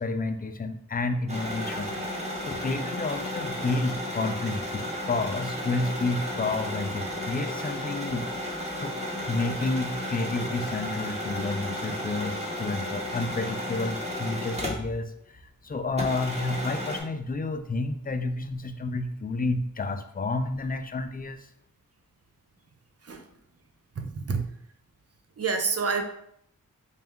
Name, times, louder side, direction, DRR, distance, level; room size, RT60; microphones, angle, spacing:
voice 1, 0.0-2.0 2.4-8.3 8.8-8.9 9.3-15.1 15.6-21.4, left 3 dB, 25° left, 8 dB, 0.4 m, -30 dB
sound 1, 1.3-15.1 15.4-15.5 16.0-17.0, left 1 dB, 20° right, 1.1 m, -33 dB
voice 2, 24.0-24.5 25.4-26.0, right 4 dB, 45° right, 5 dB, 0.6 m, -28 dB
4.3 x 2.3 x 3.5 m, 0.70 s
wide cardioid pair, 65°, 34 cm